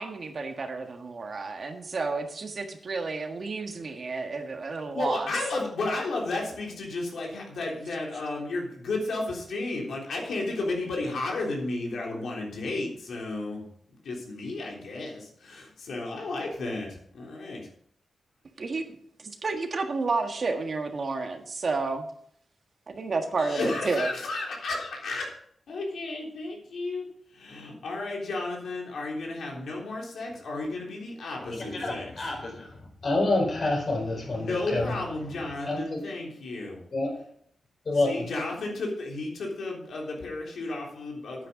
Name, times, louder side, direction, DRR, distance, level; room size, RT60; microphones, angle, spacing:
voice 1, 0.0-5.3 18.6-18.8 19.4-22.1 22.9-24.1, right 3 dB, 50° right, 5 dB, 1.5 m, -31 dB
voice 2, 4.9-13.6 14.0-17.6 23.4-25.4 25.7-27.1 27.3-32.1 34.3-36.8 38.0-41.5, left 2 dB, 90° left, -1 dB, 3.5 m, -33 dB
voice 3, 31.5-35.0 35.6-36.0 36.9-37.1 37.8-38.3, left 2 dB, 50° left, 1 dB, 4.5 m, -28 dB
9.8 x 9.0 x 5.0 m, 0.64 s
wide cardioid pair, 125°, 0 cm